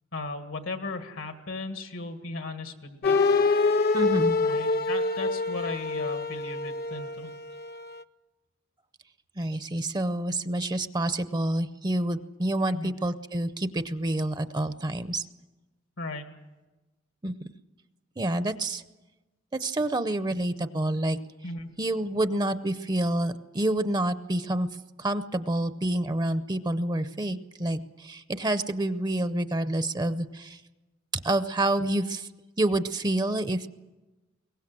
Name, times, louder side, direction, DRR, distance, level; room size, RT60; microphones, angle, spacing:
voice 1, 0.1-3.2 4.4-7.3 12.7-12.9 16.0-16.3 21.4-21.7, left 2 dB, 80° left, 6 dB, 1.9 m, -36 dB
sound 1, 3.0-8.0, left 3 dB, 50° left, 0.7 m, -26 dB
voice 2, 3.9-4.4 9.4-15.3 17.2-17.5 18.2-18.8 19.5-21.2 21.8-24.7 25.0-30.6 31.2-32.3 32.6-33.7, right 1 dB, 20° right, 12 dB, 0.6 m, -28 dB
22.5 x 19.0 x 7.6 m, 1.1 s
head